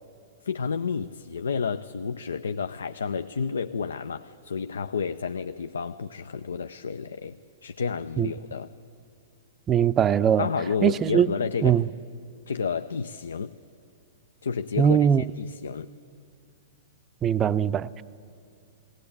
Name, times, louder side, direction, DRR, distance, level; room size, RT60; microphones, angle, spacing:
voice 1, 0.4-8.7 10.4-11.8 12.5-13.5 14.4-15.1 15.4-15.9, left 5 dB, 75° left, 0.5 m, -31 dB
voice 2, 9.7-10.5 10.8-11.3 11.6-11.8 14.8-15.2 17.2-18.0, right 9 dB, 25° right, 0.5 m, -21 dB
20.0 x 17.5 x 8.6 m
figure-of-eight pair, 110°, 0 cm